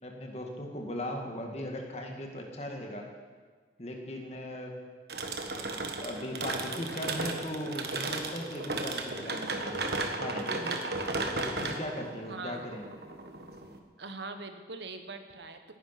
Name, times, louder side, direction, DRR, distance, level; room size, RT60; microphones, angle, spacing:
voice 1, 0.0-3.1 3.8-4.8 5.5-9.9 10.1-10.9 11.3-12.8, left 1 dB, 35° left, 2 dB, 2.1 m, -38 dB
sound 1, 5.1-13.8, right 3 dB, 65° right, 1.5 m, -35 dB
voice 2, 12.3-12.7 14.0-15.8, right 3 dB, 80° right, 7 dB, 1.4 m, -42 dB
18.0 x 11.0 x 6.0 m, 1.5 s
head